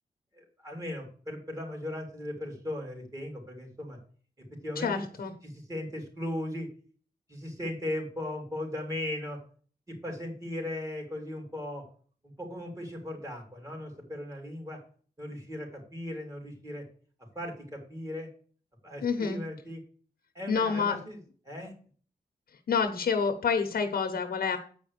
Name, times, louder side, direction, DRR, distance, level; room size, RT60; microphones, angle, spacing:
voice 1, 0.3-4.0 4.6-5.0 5.4-6.7 7.3-9.4 9.9-11.8 12.2-14.8 15.2-16.8 17.3-18.3 18.8-19.8 20.3-21.2 21.4-21.7, left 1 dB, 20° right, 1 dB, 3.5 m, -37 dB
voice 2, 4.8-5.3 19.0-19.4 20.5-21.0 22.7-24.6, left 5 dB, 70° left, 6 dB, 1.0 m, -28 dB
8.5 x 5.1 x 6.7 m, 0.43 s
wide cardioid pair, 130°, 16 cm